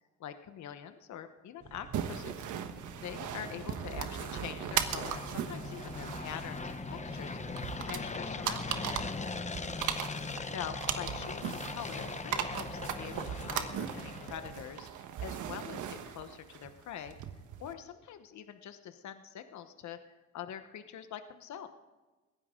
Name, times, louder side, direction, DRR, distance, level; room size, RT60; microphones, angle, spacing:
voice 1, 0.2-2.4 3.0-8.8 10.5-17.2 17.6-20.0 20.3-21.7, left 9 dB, 70° left, 8 dB, 1.1 m, -44 dB
sound 1, 1.6-14.6, right 5 dB, 50° right, 1.6 m, -51 dB
sound 2, 1.9-17.7, right 9 dB, 80° right, 1.3 m, -38 dB
sound 3, 2.4-14.7, left 4 dB, 25° left, 1.0 m, -41 dB
20.5 x 15.5 x 3.8 m, 1.2 s
cardioid pair, 90°, 30 cm